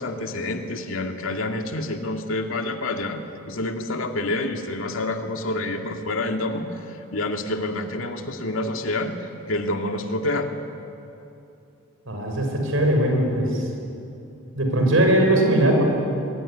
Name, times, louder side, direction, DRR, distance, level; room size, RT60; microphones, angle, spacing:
voice 1, 0.0-3.2 3.5-6.8 7.1-9.1 9.5-10.5, left 2 dB, 70° left, 4 dB, 2.2 m, -27 dB
voice 2, 12.1-13.6 14.6-15.8, right 1 dB, 70° right, 2 dB, 6.2 m, -20 dB
23.5 x 22.5 x 10.0 m, 2.7 s
head